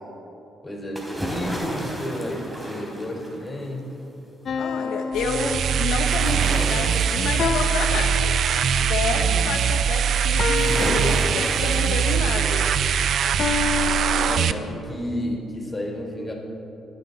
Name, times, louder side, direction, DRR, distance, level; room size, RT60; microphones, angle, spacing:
voice 1, 0.6-3.9 9.0-9.4 13.4-16.3, equal, 25° left, -1 dB, 4.1 m, -32 dB
sound 1, 1.0-3.8 6.1-8.7 10.6-12.9 13.3-13.4, equal, 10° right, 3.1 m, -33 dB
sound 2, 4.5-6.3 7.4-8.9 10.4-11.9 13.4-14.4, left 5 dB, 55° left, 0.8 m, -29 dB
voice 2, 4.6-8.3 8.8-12.7, left 4 dB, 85° left, 2 dB, 1.0 m, -29 dB
sound 3, 5.1-14.5, right 8 dB, 65° right, 0.5 m, -22 dB
24.5 x 9.8 x 4.1 m, 3.0 s
cardioid pair, 90°, 0 cm